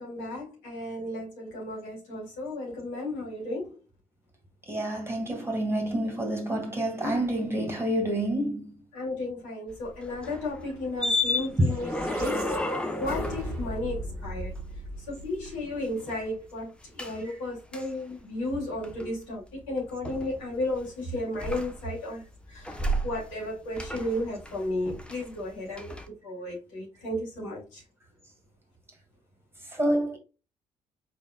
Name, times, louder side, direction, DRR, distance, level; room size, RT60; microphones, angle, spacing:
voice 1, 0.0-3.8 8.9-12.4 13.0-14.5 15.0-27.8, left 1 dB, 70° left, 2.4 m, -34 dB
voice 2, 4.7-8.7 11.6-11.7 29.7-30.2, right 1 dB, 15° right, 2.0 m, -27 dB
sound 1, 9.7-14.8 15.1-16.3 17.0-17.2 17.7-17.9 18.5-19.0 20.0-20.8 21.3-22.1 22.5-23.5 23.7-25.5 25.8-26.0, left 1 dB, 5° left, 0.9 m, -33 dB
sound 2, 11.5-15.9, right 1 dB, 65° right, 1.3 m, -38 dB
5.1 x 4.2 x 2.3 m
figure-of-eight pair, 45°, 17 cm